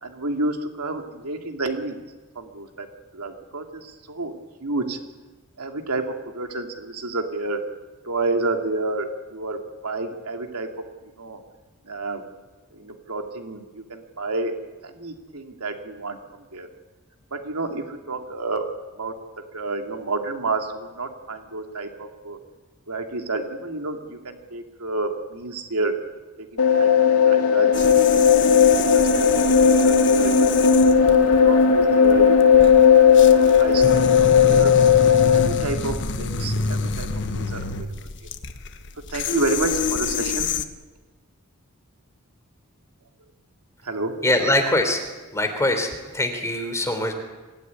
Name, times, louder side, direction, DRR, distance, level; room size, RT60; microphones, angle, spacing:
voice 1, 0.0-2.0 2.3-2.9 3.1-4.4 4.6-5.0 5.6-7.6 8.0-10.7 11.2-11.4 11.9-12.2 12.7-14.5 14.8-16.7 17.3-18.7 19.0-19.1 19.5-22.4 22.9-26.0 26.4-27.9 28.5-29.3 29.6-30.5 30.8-30.9 31.4-32.9 33.2-34.7 35.3-37.9 39.1-40.5 43.8-44.1, right 2 dB, 80° right, 4 dB, 2.8 m, -30 dB
sound 1, 26.6-35.5, left 7 dB, 80° left, 2.5 m, -16 dB
sound 2, 27.7-40.6, left 4 dB, 55° left, 1.3 m, -28 dB
voice 2, 44.2-45.0 45.3-47.1, left 1 dB, 15° left, 5 dB, 3.4 m, -23 dB
25.0 x 16.5 x 9.7 m, 1.2 s
head